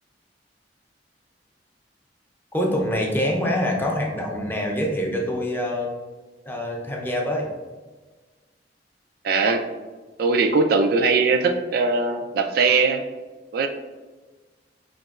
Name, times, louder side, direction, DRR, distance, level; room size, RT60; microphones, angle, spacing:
voice 1, 2.5-5.9 6.5-7.5, left 1 dB, 10° left, -1 dB, 0.6 m, -25 dB
voice 2, 9.2-9.6 10.2-13.0 13.5-13.7, right 4 dB, 60° right, 5 dB, 0.4 m, -20 dB
5.2 x 2.9 x 2.3 m, 1.3 s
head